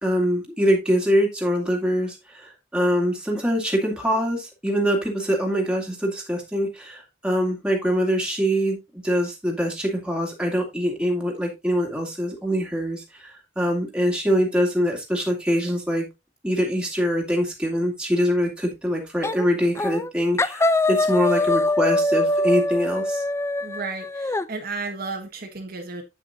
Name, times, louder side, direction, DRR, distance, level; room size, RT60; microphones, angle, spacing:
voice 1, 0.0-16.1 16.4-23.2, equal, 5° right, -1 dB, 2.2 m, -24 dB
sound 1, 19.2-19.5 19.8-20.1 20.4-24.5, left 2 dB, 15° left, 0.3 m, -23 dB
voice 2, 23.6-26.0, right 4 dB, 55° right, 3 dB, 1.4 m, -33 dB
8.3 x 8.0 x 2.6 m, 0.23 s
head